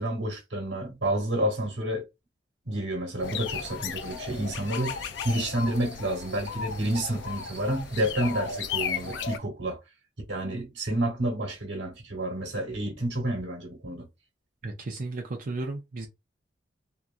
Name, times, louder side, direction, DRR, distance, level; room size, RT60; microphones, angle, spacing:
voice 1, 0.0-2.0 2.6-9.8 10.3-14.1, right 1 dB, 80° right, 1.2 m, -29 dB
sound 1, 3.2-9.4, left 7 dB, 70° left, 0.3 m, -35 dB
sound 2, 3.2-9.3, right 1 dB, 10° right, 1.1 m, -47 dB
voice 2, 14.6-16.1, right 2 dB, 50° right, 0.5 m, -34 dB
2.9 x 2.4 x 2.5 m
head